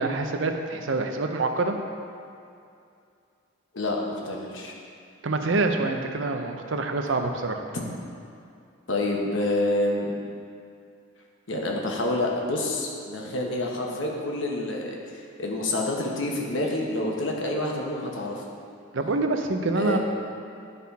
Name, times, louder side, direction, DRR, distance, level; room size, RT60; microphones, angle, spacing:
voice 1, 0.0-1.7 5.2-7.6 18.9-20.0, right 3 dB, 65° right, 5 dB, 0.6 m, -26 dB
voice 2, 3.7-4.7 7.7-7.8 8.9-10.1 11.5-15.0 15.4-18.4 19.7-20.0, left 2 dB, 65° left, 0 dB, 1.1 m, -28 dB
11.5 x 4.2 x 4.1 m, 2.5 s
head